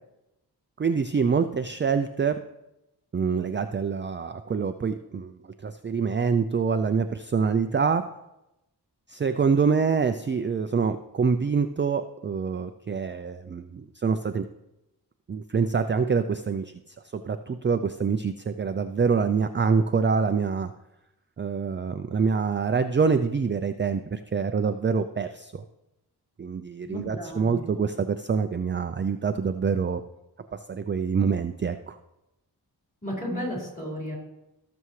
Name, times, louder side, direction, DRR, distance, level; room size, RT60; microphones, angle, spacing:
voice 1, 0.8-2.4 3.1-5.3 5.6-8.0 9.1-14.5 15.3-20.7 21.4-25.5 26.4-30.0 30.5-32.0, right 5 dB, 30° right, 9 dB, 0.4 m, -26 dB
voice 2, 26.8-27.6 33.0-34.2, equal, 20° left, -4 dB, 4.4 m, -33 dB
18.5 x 7.0 x 3.2 m, 0.91 s
wide cardioid pair, 90°, 41 cm